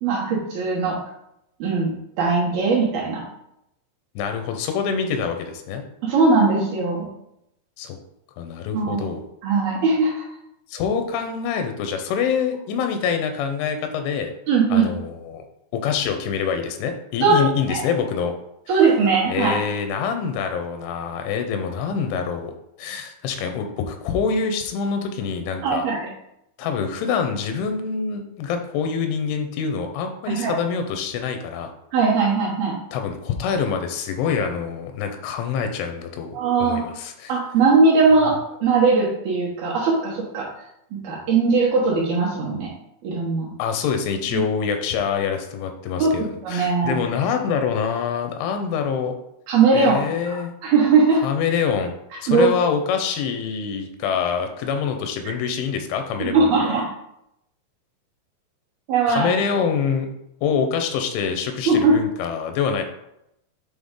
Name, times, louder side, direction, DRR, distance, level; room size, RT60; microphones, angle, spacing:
voice 1, 0.0-1.0 1.6-3.2 6.0-7.1 8.7-9.1 9.4-10.1 14.5-14.9 17.2-17.8 18.7-19.6 25.6-26.1 30.3-30.6 31.9-32.8 36.3-36.8 37.3-38.4 38.6-40.5 40.9-42.7 43.0-43.5 44.3-44.4 46.0-47.0 49.5-50.0 50.3-50.4 50.6-51.2 52.3-52.5 55.2-55.3 56.2-56.8 58.9-59.3 61.7-61.9, right 4 dB, 70° right, -4 dB, 2.6 m, -19 dB
voice 2, 4.2-5.8 7.8-8.0 8.4-9.3 10.7-14.3 14.7-15.4 15.7-18.3 19.3-25.8 26.6-31.7 32.9-37.3 43.6-49.1 49.7-50.5 51.2-51.9 52.2-56.8 59.1-60.1 60.4-62.8, left 6 dB, 90° left, 6 dB, 3.2 m, -25 dB
8.1 x 3.8 x 3.6 m, 0.81 s
omnidirectional pair, 5.4 m